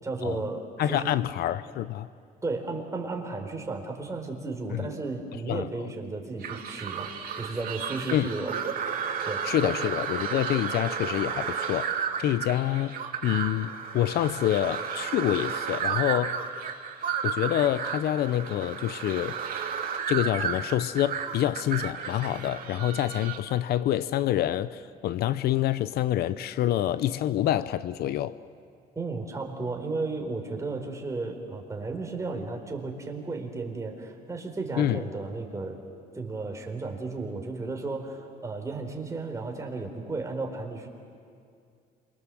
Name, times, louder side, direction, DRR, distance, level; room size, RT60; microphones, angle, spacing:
voice 1, 0.0-1.1 2.4-8.6 9.2-9.9 28.9-35.8 36.1-40.9, right 3 dB, 20° right, 1 dB, 4.3 m, -34 dB
voice 2, 0.8-2.1 4.7-4.9 5.5-5.7 8.1-8.3 9.4-13.0 13.2-16.4 17.2-19.4 20.1-28.4 34.8-35.0, left 12 dB, 70° left, 15 dB, 0.7 m, -27 dB
sound 1, 6.4-23.4, right 7 dB, 55° right, 2.6 m, -33 dB
28.0 x 24.5 x 7.8 m, 2.3 s
cardioid pair, 110°, 17 cm